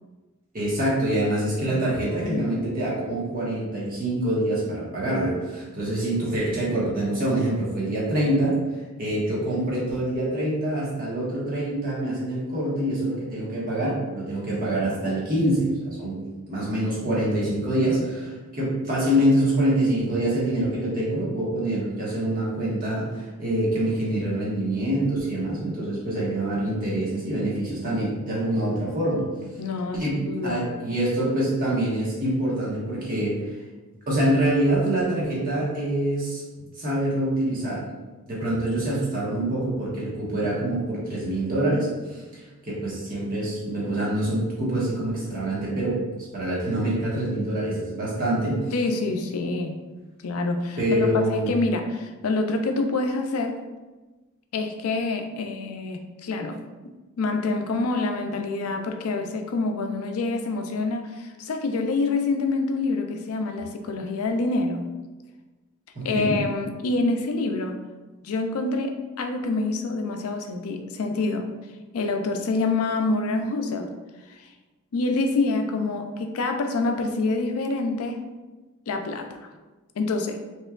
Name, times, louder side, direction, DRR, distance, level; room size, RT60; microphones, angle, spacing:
voice 1, 0.5-8.6 9.0-16.2 16.5-29.3 29.9-33.4 34.1-36.4 36.7-37.8 38.3-46.0 46.3-48.6 50.8-51.5 65.9-66.4, right 1 dB, 40° right, -6 dB, 1.3 m, -25 dB
voice 2, 1.7-2.5 29.6-30.7 36.6-36.7 48.7-49.8 50.2-53.6 54.5-64.8 66.0-67.8 68.2-71.5 71.9-73.9 74.3-74.5 74.9-78.2 78.9-79.3 80.0-80.4, left 3 dB, 80° left, 5 dB, 0.4 m, -27 dB
4.3 x 3.1 x 2.4 m, 1.2 s
head